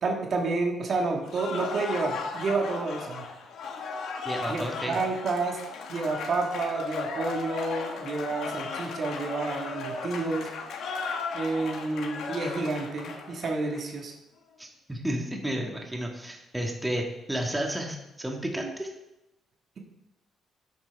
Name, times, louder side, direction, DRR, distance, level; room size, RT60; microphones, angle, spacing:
voice 1, 0.0-3.3 4.5-5.6 5.9-10.5 11.3-14.1, right 3 dB, 55° right, 1 dB, 1.8 m, -30 dB
Cheering / Applause, 1.2-13.8, left 4 dB, 75° left, 1.3 m, -36 dB
voice 2, 4.2-5.0 14.6-18.9, right 1 dB, 10° right, 1 dB, 1.7 m, -32 dB
12.0 x 8.3 x 3.5 m, 0.93 s
cardioid pair, 90°, 0 cm